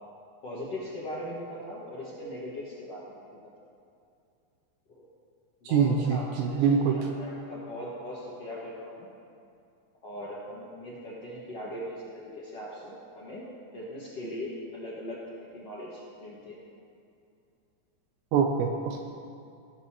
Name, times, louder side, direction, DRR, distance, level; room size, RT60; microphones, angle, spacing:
voice 1, 0.4-3.4 4.9-5.1 5.6-9.1 10.0-13.4 13.7-16.6, left 1 dB, 60° left, -8 dB, 1.6 m, -39 dB
voice 2, 5.7-7.0 18.3-19.0, right 6 dB, 85° right, 3 dB, 2.6 m, -24 dB
18.0 x 12.5 x 3.0 m, 2.6 s
omnidirectional pair, 5.6 m